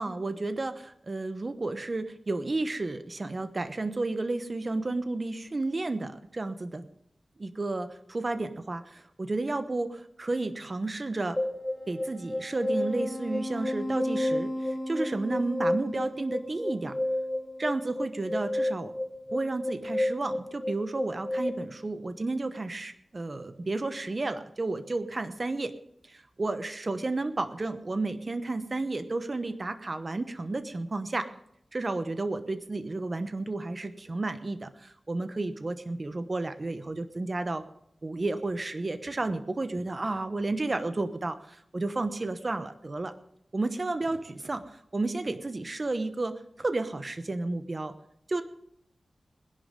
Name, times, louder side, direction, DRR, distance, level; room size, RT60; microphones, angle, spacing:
voice 1, 0.0-6.9 7.4-11.4 11.9-17.0 17.6-18.9 19.3-25.7 26.1-31.3 31.7-37.6 38.0-43.1 43.5-47.9 48.3-48.4, right 2 dB, 40° right, 10 dB, 1.0 m, -32 dB
sound 1, 11.4-21.5, left 1 dB, 15° left, 2.3 m, -31 dB
20.0 x 11.0 x 3.8 m, 0.73 s
wide cardioid pair, 80°, 0 cm